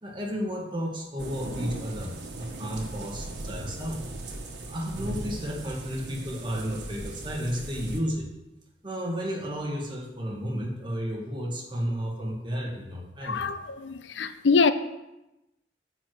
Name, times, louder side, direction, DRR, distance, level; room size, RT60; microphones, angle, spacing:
voice 1, 0.0-4.0 4.7-8.3 8.8-13.4, equal, 25° right, 2.0 m, -32 dB
sound 1, 1.2-8.0, right 2 dB, 70° right, 1.6 m, -38 dB
voice 2, 13.2-14.7, left 4 dB, 85° left, 0.6 m, -24 dB
9.9 x 4.9 x 7.9 m
head